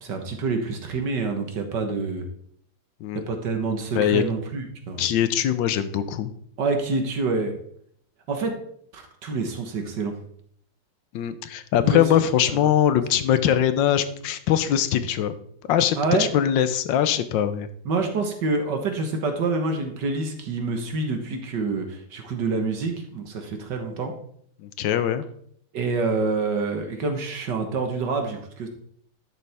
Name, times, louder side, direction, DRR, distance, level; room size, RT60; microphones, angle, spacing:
voice 1, 0.0-2.3 3.2-5.0 6.6-7.5 8.3-8.6 8.9-10.1 11.8-12.0 16.0-16.3 17.9-24.1 25.7-28.7, right 3 dB, 55° right, 5 dB, 1.8 m, -27 dB
voice 2, 5.0-6.3 11.1-15.3 15.7-17.7 24.6-25.2, left 10 dB, 70° left, 12 dB, 1.3 m, -22 dB
11.5 x 7.0 x 3.5 m, 0.65 s
omnidirectional pair, 2.3 m